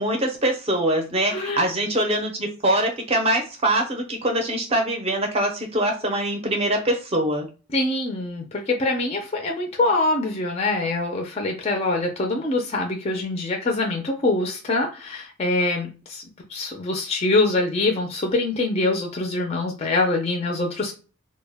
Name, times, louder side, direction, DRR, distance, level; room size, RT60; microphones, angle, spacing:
voice 1, 0.0-7.5, right 1 dB, 25° right, 3 dB, 0.5 m, -23 dB
voice 2, 1.3-1.7 7.7-16.2 16.5-20.9, left 2 dB, 30° left, 2 dB, 0.4 m, -24 dB
2.1 x 2.1 x 3.3 m, 0.34 s
head